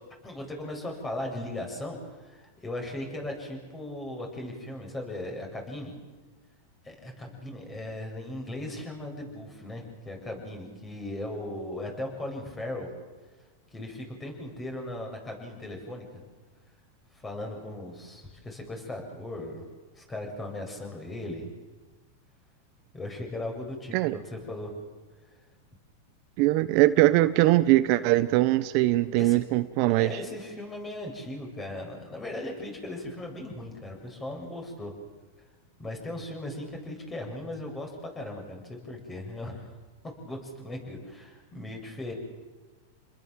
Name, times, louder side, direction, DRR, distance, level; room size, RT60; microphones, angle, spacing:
voice 1, 0.2-5.9 6.8-12.9 13.7-16.0 17.2-19.7 19.9-21.5 22.9-24.7 29.2-29.4 30.0-34.9 35.8-39.7 40.2-42.1, left 1 dB, 15° left, 2 dB, 7.9 m, -37 dB
voice 2, 26.4-30.1, right 17 dB, 50° right, 12 dB, 1.1 m, -21 dB
29.5 x 20.5 x 7.7 m, 1.3 s
hypercardioid pair, 125°, 0 cm